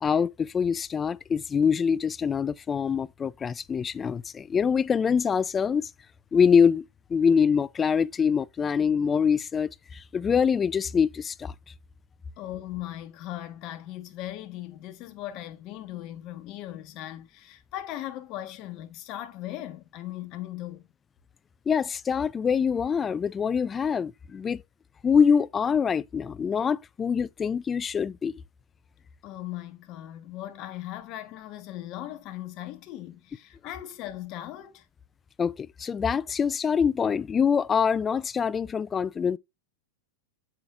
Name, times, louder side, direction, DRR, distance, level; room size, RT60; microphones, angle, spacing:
voice 1, 0.0-5.9 6.3-6.8 7.1-11.5 21.7-24.6 25.0-28.3 35.4-39.4, left 6 dB, 20° left, 0.4 m, -24 dB
voice 2, 12.4-20.8 29.2-34.8, left 13 dB, 45° left, 1.3 m, -38 dB
7.8 x 7.3 x 2.5 m
hypercardioid pair, 105°, 0 cm